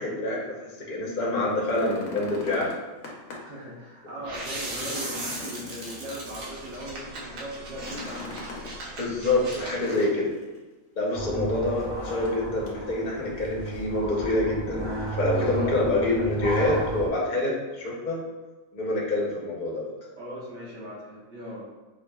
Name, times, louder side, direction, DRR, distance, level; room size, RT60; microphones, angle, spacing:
voice 1, 0.0-2.7 4.7-4.9 9.0-10.3 11.0-18.2 18.7-19.9, left 2 dB, 40° left, -4 dB, 0.8 m, -26 dB
sound 1, 1.4-3.6 4.0-4.1 4.5-6.4 7.7-8.8 9.7-10.6 11.7-12.4 12.7-12.8 13.4-14.0 15.1-15.2, left 3 dB, 90° left, 1.2 m, -42 dB
voice 2, 3.4-8.6 11.5-11.8 15.5-16.4 20.2-21.7, equal, 60° right, -5 dB, 1.3 m, -39 dB
sound 2, 4.2-10.1, right 2 dB, 85° right, 1.2 m, -38 dB
sound 3, 11.1-17.1, right 3 dB, 20° right, 0.3 m, -33 dB
5.0 x 2.5 x 2.2 m, 1.2 s
omnidirectional pair, 1.4 m